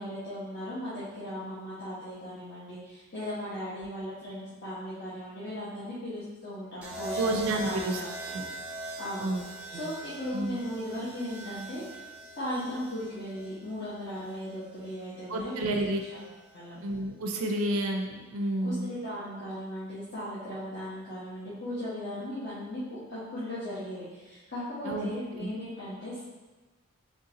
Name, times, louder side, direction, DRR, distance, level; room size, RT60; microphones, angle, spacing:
voice 1, 0.0-8.1 9.0-9.3 9.7-12.1 12.4-15.8 16.1-16.2 16.5-16.8 18.6-26.2, equal, 45° left, -12 dB, 0.9 m, -37 dB
sound 1, 6.8-14.9 16.2-16.5, right 2 dB, 5° right, 0.5 m, -41 dB
voice 2, 7.2-8.0 8.3-8.4 9.2-9.4 9.7-9.9 10.3-10.6 15.3-16.0 16.8-18.9 24.8-25.1 25.3-25.5, right 1 dB, 65° right, 3 dB, 0.4 m, -30 dB
3.7 x 3.5 x 2.8 m, 1.2 s
head